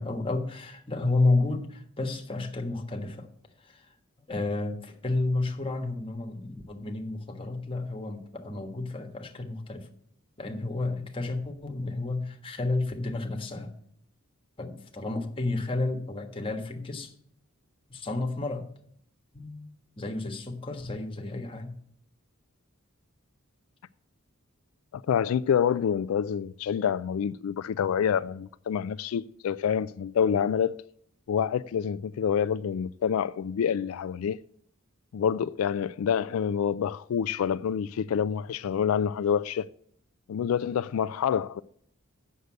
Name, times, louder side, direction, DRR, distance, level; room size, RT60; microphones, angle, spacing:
voice 1, 0.0-3.3 3.6-3.9 4.3-9.9 10.4-13.7 14.6-17.1 17.9-18.7 19.3-21.8, left 2 dB, 25° left, 1.4 m, -31 dB
voice 2, 24.9-30.8 31.3-34.4 35.1-39.7 40.3-41.6, left 8 dB, 80° left, 0.3 m, -27 dB
8.1 x 6.6 x 7.6 m
head